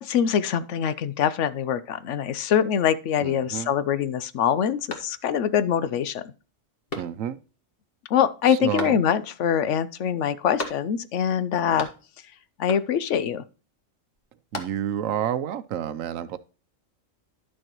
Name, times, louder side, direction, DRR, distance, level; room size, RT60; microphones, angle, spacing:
voice 1, 0.0-6.2 8.1-11.9 12.6-13.4, left 8 dB, 70° left, 0.9 m, -24 dB
voice 2, 3.2-3.7 7.0-7.4 8.5-9.0 14.5-16.4, right 10 dB, 80° right, 1.1 m, -29 dB
sound 1, 4.9-5.6 6.0-6.1 6.9-7.5 8.8-9.4 10.6-11.2 11.4-12.3 12.7-13.2 14.2-15.1, left 3 dB, 45° left, 1.6 m, -37 dB
11.5 x 6.4 x 2.9 m
omnidirectional pair, 1.4 m